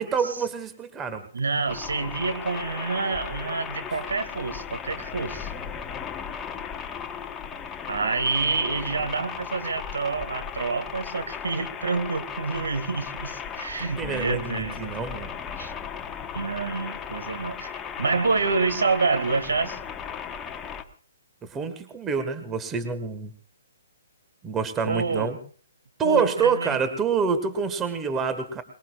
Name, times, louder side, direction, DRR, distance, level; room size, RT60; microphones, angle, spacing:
voice 1, 0.0-1.3 13.8-15.3 21.5-23.3 24.4-25.4 26.0-28.6, right 5 dB, 15° right, 9 dB, 1.7 m, -27 dB
voice 2, 1.3-5.5 7.9-15.0 15.6-15.7 16.3-19.8 24.8-25.3 26.0-26.8, right 4 dB, 60° right, 10 dB, 2.1 m, -27 dB
sound 1, 1.7-20.8, left 7 dB, 15° left, 1.3 m, -36 dB
23.5 x 22.0 x 2.5 m, 0.43 s
figure-of-eight pair, 125°, 0 cm